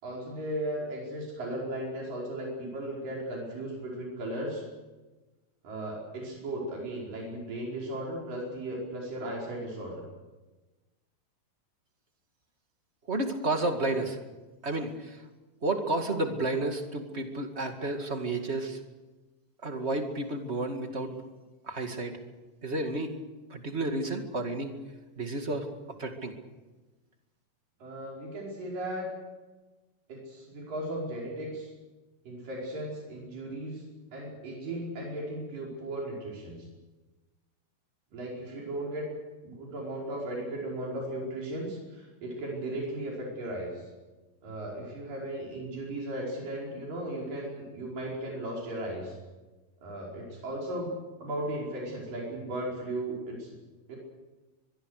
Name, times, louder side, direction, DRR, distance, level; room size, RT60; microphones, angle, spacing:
voice 1, 0.0-4.6 5.6-10.0 27.8-29.1 30.1-31.7 32.2-33.8 34.1-36.7 38.1-39.1 39.4-43.8 44.4-49.2 49.8-50.9 51.2-53.6 53.9-54.0, right 1 dB, 80° right, -3 dB, 6.8 m, -36 dB
voice 2, 13.1-14.2 14.6-15.2 15.6-18.8 19.6-21.1 21.6-22.2 22.6-23.2 23.5-24.8 25.2-25.7 26.0-26.3, right 2 dB, 25° right, 5 dB, 1.9 m, -31 dB
23.5 x 23.0 x 6.6 m, 1.2 s
omnidirectional pair, 3.8 m